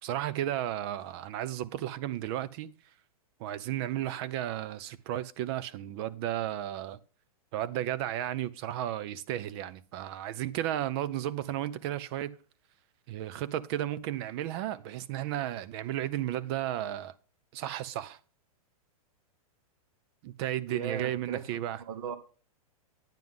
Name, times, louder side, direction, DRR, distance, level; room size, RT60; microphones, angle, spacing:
voice 1, 0.0-2.7 3.4-7.0 7.5-12.4 13.1-17.1 17.5-18.2 20.2-21.8, right 12 dB, 45° right, 0.7 m, -33 dB
voice 2, 20.7-21.6 21.9-22.2, right 7 dB, 65° right, 1.9 m, -37 dB
9.4 x 9.3 x 3.7 m
hypercardioid pair, 145°, 19 cm